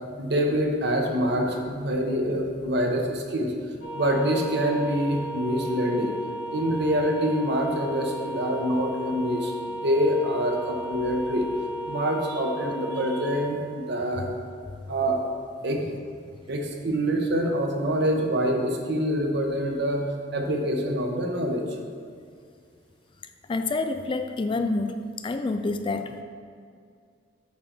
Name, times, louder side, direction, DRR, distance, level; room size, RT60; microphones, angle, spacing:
voice 1, 0.2-3.5 3.9-6.1 6.5-9.5 9.8-11.5 11.9-14.3 14.9-15.2 15.6-15.8 16.5-20.0 20.3-21.6, equal, 60° right, 2 dB, 1.0 m, -25 dB
sound 1, 3.8-13.5, right 1 dB, 90° left, 1.6 m, -35 dB
voice 2, 23.5-26.2, left 3 dB, 25° left, 7 dB, 0.3 m, -28 dB
8.4 x 3.9 x 6.0 m, 2.2 s
head